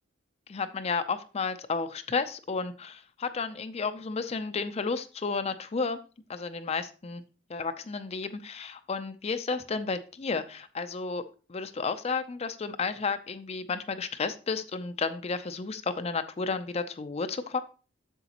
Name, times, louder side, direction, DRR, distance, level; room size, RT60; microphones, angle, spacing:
voice 1, 0.5-6.0 6.3-7.2 7.5-11.2 11.5-17.6, left 4 dB, 30° left, 10 dB, 0.4 m, -32 dB
7.9 x 7.3 x 2.9 m, 0.35 s
head